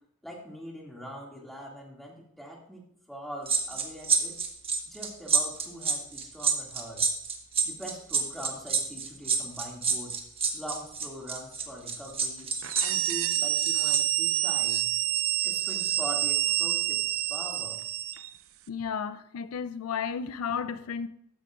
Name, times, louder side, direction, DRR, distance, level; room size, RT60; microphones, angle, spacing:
voice 1, 0.2-4.4 4.9-7.0 7.6-10.1 10.5-12.5 12.8-14.8 15.4-17.0 17.3-17.8, equal, ahead, 2.1 m, -42 dB
sound 1, 3.5-14.0 14.3-14.5, right 5 dB, 25° right, 1.2 m, -28 dB
sound 2, 12.6-18.3, right 14 dB, 70° right, 0.5 m, -28 dB
voice 2, 18.7-21.1, left 6 dB, 80° left, 0.4 m, -33 dB
13.5 x 9.7 x 2.4 m
head